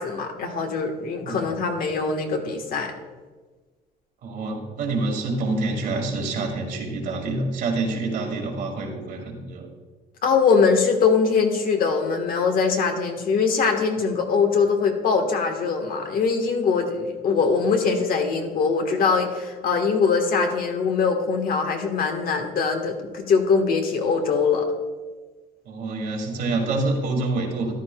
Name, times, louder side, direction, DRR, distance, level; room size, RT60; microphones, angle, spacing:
voice 1, 0.0-2.9 10.2-24.7, left 5 dB, 60° left, 4 dB, 1.4 m, -22 dB
voice 2, 4.2-9.7 25.7-27.7, right 2 dB, 65° right, 1 dB, 2.1 m, -27 dB
14.0 x 10.5 x 2.3 m, 1.3 s
cardioid pair, 110°, 17 cm